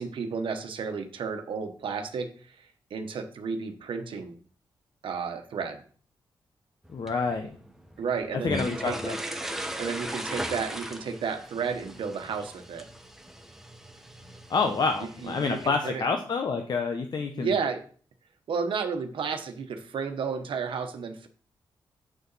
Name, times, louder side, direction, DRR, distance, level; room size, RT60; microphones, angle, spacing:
voice 1, 0.0-4.3 5.0-5.8 8.0-9.1 9.8-12.8 15.2-16.0 17.3-17.8 18.5-21.3, right 5 dB, 80° right, 5 dB, 1.1 m, -32 dB
sound 1, 6.8-15.7, right 1 dB, 5° right, 1.1 m, -38 dB
voice 2, 6.9-7.5 8.4-9.2 14.5-17.5, left 4 dB, 55° left, 5 dB, 0.9 m, -28 dB
6.8 x 6.5 x 4.1 m, 0.43 s
cardioid pair, 90°, 9 cm